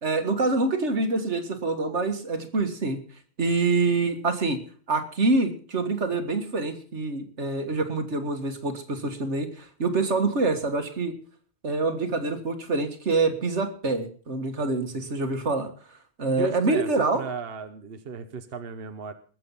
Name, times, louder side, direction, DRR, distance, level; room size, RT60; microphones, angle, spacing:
voice 1, 0.0-3.0 3.4-4.6 4.9-11.2 11.6-15.7 16.2-17.2, right 3 dB, 85° right, 7 dB, 2.1 m, -26 dB
voice 2, 16.3-19.1, right 4 dB, 60° right, 8 dB, 1.2 m, -35 dB
20.5 x 7.8 x 5.6 m, 0.43 s
omnidirectional pair, 1.1 m